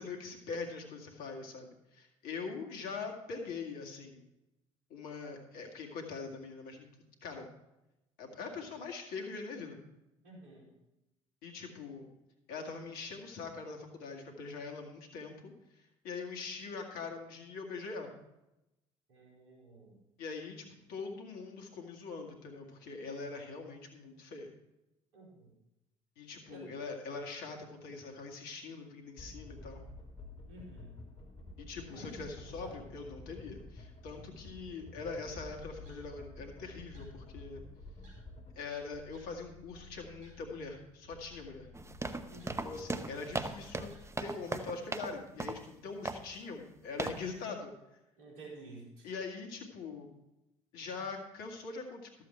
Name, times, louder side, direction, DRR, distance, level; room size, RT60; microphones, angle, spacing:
voice 1, 0.0-4.3 4.9-6.9 7.2-7.5 8.2-9.8 11.4-12.1 12.5-18.1 20.2-24.5 26.2-29.8 31.6-37.6 38.6-41.7 42.6-43.9 44.2-47.7 49.0-50.1 50.7-52.2, left 4 dB, 65° left, 2 dB, 2.0 m, -43 dB
voice 2, 10.2-10.7 19.1-20.0 25.1-25.5 26.5-26.7 30.5-31.0 31.9-32.8 42.3-42.7 48.2-49.1, right 2 dB, 70° right, -3 dB, 4.3 m, -52 dB
sound 1, 29.2-38.6, left 2 dB, 40° left, 3.2 m, -50 dB
sound 2, 35.3-44.0, left 3 dB, 55° right, 4.3 m, -56 dB
sound 3, 41.7-45.1 45.4-45.7 46.1-46.3 47.0-47.3, right 3 dB, 15° right, 0.9 m, -38 dB
13.5 x 7.6 x 4.5 m, 0.93 s
hypercardioid pair, 55°, 17 cm